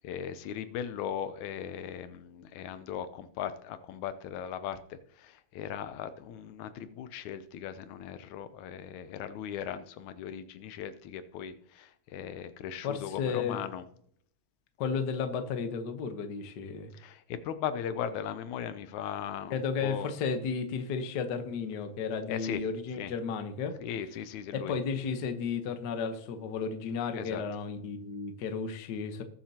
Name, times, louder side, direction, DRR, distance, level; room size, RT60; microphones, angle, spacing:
voice 1, 0.0-13.8 16.9-20.1 22.3-22.6 23.0-23.1 23.8-24.8 27.2-27.4, left 9 dB, 85° left, 12 dB, 2.1 m, -38 dB
voice 2, 12.8-13.6 14.8-16.9 19.5-23.7 24.5-29.2, left 5 dB, 60° left, 7 dB, 1.1 m, -33 dB
20.0 x 7.4 x 2.9 m, 0.67 s
omnidirectional pair, 3.3 m